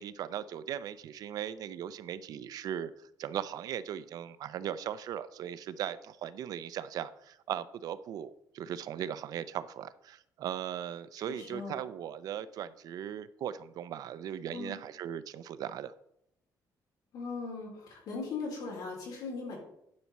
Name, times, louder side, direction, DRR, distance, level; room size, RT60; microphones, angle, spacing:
voice 1, 0.0-2.9 3.2-15.9, right 10 dB, 60° right, 15 dB, 0.5 m, -38 dB
voice 2, 11.2-11.8 14.5-14.8 17.1-19.6, left 4 dB, 65° left, -1 dB, 3.6 m, -39 dB
10.5 x 5.9 x 4.1 m, 0.78 s
cardioid pair, 160°, 7 cm